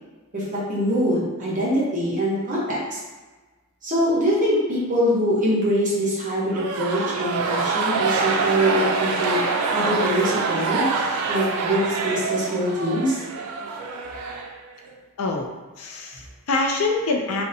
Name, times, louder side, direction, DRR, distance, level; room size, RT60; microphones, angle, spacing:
voice 1, 0.3-3.0 3.8-9.4 9.7-10.8 11.3-13.2, equal, 35° right, -7 dB, 0.8 m, -23 dB
sound 1, 6.5-14.9, right 4 dB, 90° right, 0.3 m, -25 dB
voice 2, 15.2-15.5 15.8-17.4, left 3 dB, 75° left, 1 dB, 0.4 m, -25 dB
2.7 x 2.0 x 2.6 m, 1.3 s
head